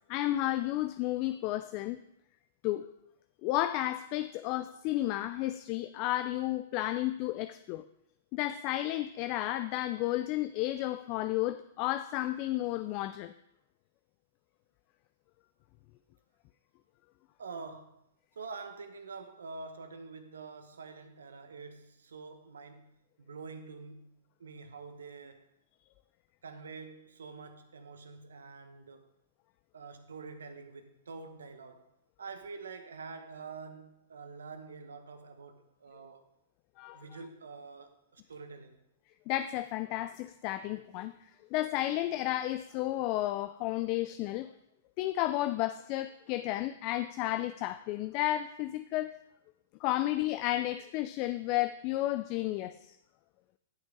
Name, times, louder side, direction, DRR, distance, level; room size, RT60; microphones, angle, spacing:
voice 1, 0.1-2.0 2.6-2.9 3.4-7.8 8.3-13.3 36.8-37.0 39.3-44.5 45.0-49.2 49.8-53.0, left 15 dB, 45° left, 0.4 m, -32 dB
voice 2, 17.4-18.0 18.3-25.5 26.4-29.1 29.7-31.9 32.2-36.3 36.9-38.8, right 4 dB, 80° right, 1.0 m, -46 dB
10.5 x 6.1 x 3.7 m
hypercardioid pair, 115°, 0 cm